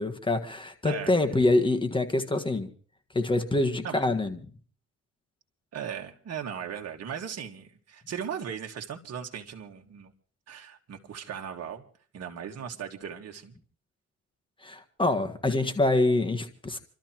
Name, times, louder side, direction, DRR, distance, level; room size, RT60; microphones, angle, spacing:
voice 1, 0.0-2.7 3.1-4.4 14.6-16.8, left 2 dB, 15° left, 6 dB, 1.5 m, -25 dB
voice 2, 5.7-10.1 10.5-11.8 12.1-13.6, right 8 dB, 55° right, 2 dB, 1.8 m, -37 dB
28.5 x 13.0 x 3.0 m, 0.44 s
cardioid pair, 90°, 30 cm